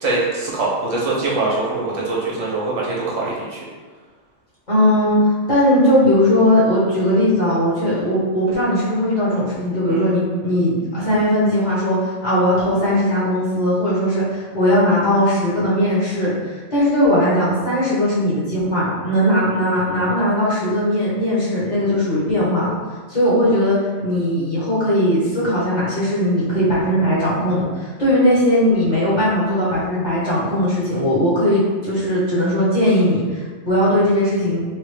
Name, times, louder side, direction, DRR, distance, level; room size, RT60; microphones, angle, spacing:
voice 1, 0.0-3.6 9.9-10.0, right 2 dB, 65° right, -4 dB, 1.0 m, -23 dB
voice 2, 4.7-22.7 23.1-34.6, equal, 35° left, -9 dB, 1.0 m, -18 dB
3.3 x 2.4 x 3.3 m, 1.4 s
omnidirectional pair, 1.4 m